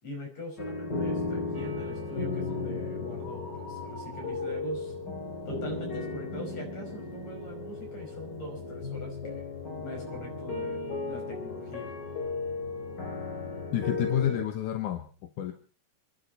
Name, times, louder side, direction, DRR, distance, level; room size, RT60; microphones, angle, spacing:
voice 1, 0.0-4.9 5.5-9.5 9.8-11.9, left 1 dB, 45° left, 2 dB, 6.7 m, -42 dB
sound 1, 0.6-14.4, left 3 dB, 30° left, 3.2 m, -35 dB
sound 2, 1.5-7.3 7.6-8.0 8.4-8.6, right 1 dB, 45° right, 3.6 m, -50 dB
voice 2, 13.7-15.1 15.4-15.5, left 10 dB, 65° left, 7 dB, 2.4 m, -29 dB
28.0 x 11.5 x 4.2 m, 0.37 s
omnidirectional pair, 4.3 m